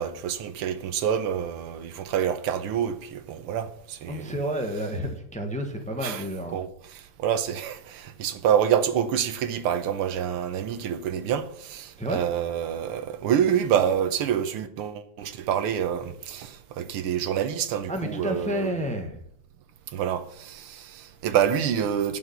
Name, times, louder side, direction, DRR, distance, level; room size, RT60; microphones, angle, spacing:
voice 1, 0.0-4.3 6.0-6.2 6.5-6.7 7.2-18.7 19.9-22.2, right 9 dB, 85° right, 1.8 m, -27 dB
voice 2, 4.1-6.6 12.0-12.2 17.9-19.2, equal, 5° left, 0.9 m, -30 dB
11.0 x 5.8 x 7.9 m
omnidirectional pair, 2.4 m